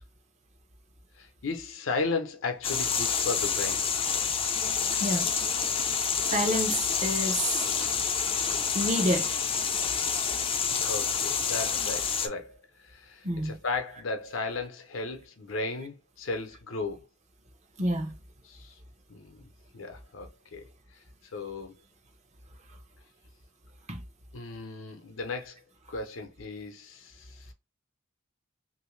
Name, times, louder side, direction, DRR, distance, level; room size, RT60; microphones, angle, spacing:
voice 1, 1.1-3.9 10.9-17.1 18.4-18.8 19.1-19.4 19.7-20.7 21.3-21.7 24.3-25.6 25.9-27.5, left 3 dB, 80° left, 0.7 m, -35 dB
sound 1, 2.6-12.3, left 6 dB, 30° left, 0.4 m, -28 dB
voice 2, 6.2-7.9 8.7-9.3 13.2-13.6 17.8-18.1 23.9-24.0, right 1 dB, 35° right, 0.7 m, -29 dB
3.0 x 2.6 x 3.1 m
head